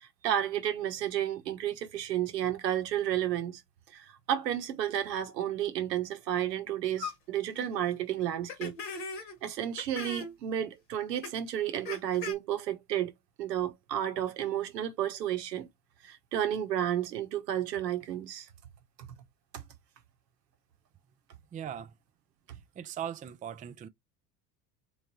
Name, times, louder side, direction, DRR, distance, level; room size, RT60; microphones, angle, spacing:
voice 1, 0.0-3.6 3.9-8.7 9.4-13.1 13.4-15.7 16.0-18.5 19.5-19.6, right 11 dB, 80° right, 1.1 m, -32 dB
sound 1, 7.0-7.1 7.5-7.7 8.5-9.3 9.8-10.3 11.2-11.3 11.8-12.3, left 4 dB, 75° left, 1.8 m, -38 dB
voice 2, 21.5-21.9 22.8-23.9, right 9 dB, 15° right, 0.5 m, -39 dB
4.0 x 3.2 x 2.9 m
hypercardioid pair, 70°, 49 cm